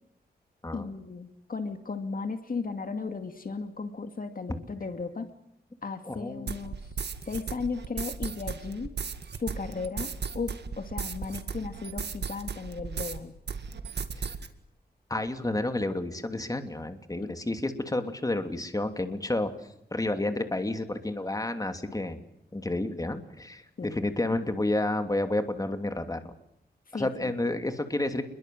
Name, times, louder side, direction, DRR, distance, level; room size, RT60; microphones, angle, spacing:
voice 1, 0.7-5.3 5.8-6.9 7.3-8.9 9.4-13.4 17.2-17.3 21.9-22.0 23.8-24.0 26.9-27.3, left 4 dB, 55° left, 7 dB, 2.4 m, -35 dB
voice 2, 6.1-6.5 14.1-14.3 15.1-19.5 19.9-22.2 22.5-26.3 26.9-28.3, left 2 dB, 20° left, 7 dB, 2.9 m, -30 dB
sound 1, 6.5-13.2 13.5-14.5, right 6 dB, 80° right, 2.1 m, -36 dB
28.5 x 22.5 x 7.8 m, 0.75 s
wide cardioid pair, 85°, 17 cm